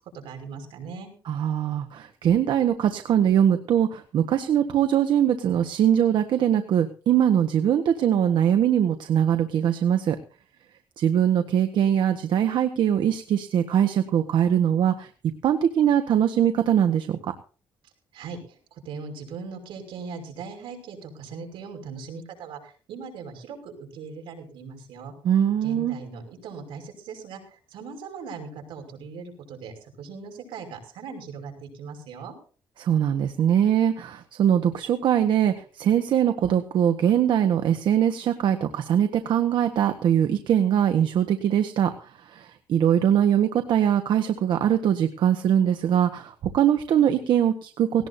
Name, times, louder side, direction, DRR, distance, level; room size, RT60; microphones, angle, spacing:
voice 1, 0.1-1.1 18.1-25.1 25.6-32.3, right 5 dB, 85° right, 4 dB, 5.7 m, -39 dB
voice 2, 1.2-10.2 11.0-15.1 15.4-17.3 25.2-26.0 32.8-48.1, right 9 dB, 70° right, 7 dB, 1.4 m, -22 dB
18.5 x 18.0 x 2.7 m, 0.39 s
cardioid pair, 130°, 8 cm